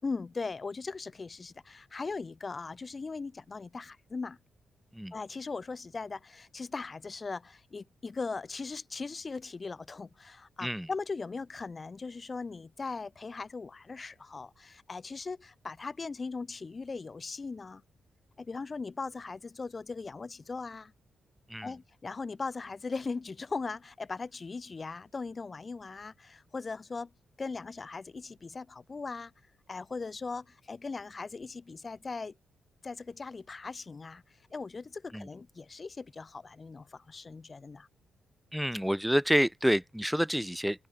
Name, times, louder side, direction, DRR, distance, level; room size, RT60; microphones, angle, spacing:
voice 1, 0.0-4.4 5.1-17.8 18.4-20.9 21.6-27.1 27.4-29.3 29.7-32.3 32.8-34.2 34.5-37.9, left 4 dB, 25° left, 5.0 m, -39 dB
voice 2, 38.5-40.9, equal, ahead, 2.4 m, -28 dB
wide cardioid pair, 150°, 0 cm